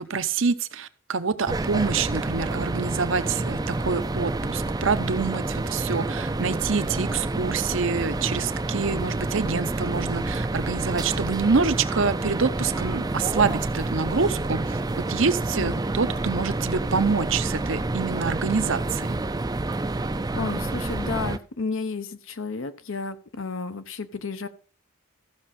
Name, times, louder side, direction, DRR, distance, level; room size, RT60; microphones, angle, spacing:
voice 1, 0.0-19.2, right 5 dB, 65° right, 12 dB, 0.7 m, -26 dB
sound 1, 1.5-21.4, right 2 dB, 20° right, 0.4 m, -28 dB
voice 2, 20.3-24.5, left 4 dB, 65° left, 12 dB, 0.8 m, -32 dB
14.0 x 6.3 x 4.2 m, 0.40 s
head